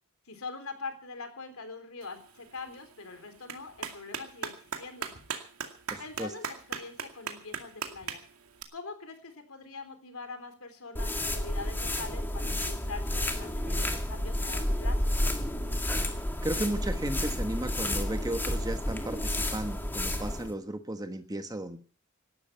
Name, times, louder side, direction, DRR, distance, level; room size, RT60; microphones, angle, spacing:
voice 1, 0.3-5.1 6.0-8.2 8.7-15.2, left 4 dB, 80° left, 7 dB, 3.8 m, -43 dB
Clapping, 2.0-8.6, right 6 dB, 85° right, 2.3 m, -40 dB
voice 2, 5.9-6.3 16.4-21.8, right 1 dB, 15° right, 8 dB, 1.3 m, -34 dB
sound 1, 11.0-20.5, left 1 dB, 10° left, 1.9 m, -31 dB
18.5 x 12.5 x 5.7 m, 0.43 s
head